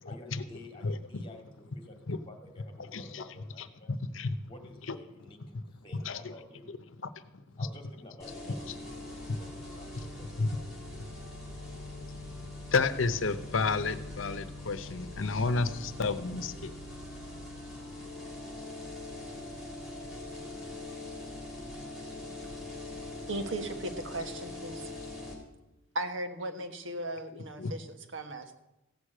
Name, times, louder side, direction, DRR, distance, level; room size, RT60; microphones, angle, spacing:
voice 1, 0.1-3.9 4.5-6.8 7.6-10.6, left 1 dB, 25° left, 3 dB, 2.2 m, -52 dB
voice 2, 0.8-1.2 2.1-2.2 2.9-3.2 3.6-3.7 4.0-4.5 4.9-5.0 5.9-6.3 9.3-9.4 10.0-10.1 10.4-10.5 12.7-16.7 27.6-27.7, left 4 dB, 80° left, 12 dB, 0.8 m, -31 dB
sound 1, 8.2-25.3, left 2 dB, 5° right, 3.8 m, -42 dB
voice 3, 23.3-24.9 25.9-28.6, right 1 dB, 75° right, 6 dB, 1.4 m, -37 dB
15.5 x 6.6 x 8.8 m, 0.93 s
head